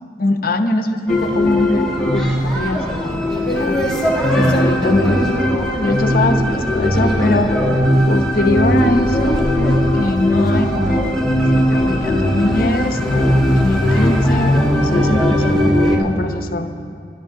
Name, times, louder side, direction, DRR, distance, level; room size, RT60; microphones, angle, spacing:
voice 1, 0.2-3.9 4.3-7.5 8.1-16.7, left 2 dB, 50° left, 7 dB, 0.9 m, -22 dB
sound 1, 1.1-16.0, equal, 5° left, 1.7 m, -18 dB
23.5 x 12.0 x 3.7 m, 2.5 s
head